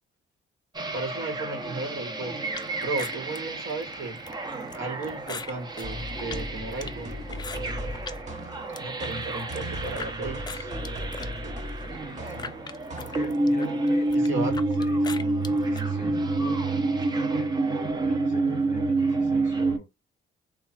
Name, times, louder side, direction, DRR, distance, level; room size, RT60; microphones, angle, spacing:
sound 1, 0.7-19.8, right 2 dB, 20° right, 0.6 m, -29 dB
voice 1, 0.9-2.4 2.8-4.2 4.7-7.1 8.8-10.7 14.1-14.6, right 3 dB, 75° right, 1.2 m, -34 dB
sound 2, 2.5-8.2 8.6-10.1 10.5-15.8, left 4 dB, 20° left, 0.4 m, -41 dB
sound 3, 5.8-13.7, equal, 35° right, 1.2 m, -38 dB
voice 2, 11.9-12.6 13.0-14.5 14.8-15.1 15.5-17.5 18.0-19.9, left 5 dB, 40° left, 0.9 m, -44 dB
3.1 x 2.3 x 2.3 m
cardioid pair, 90°, 20 cm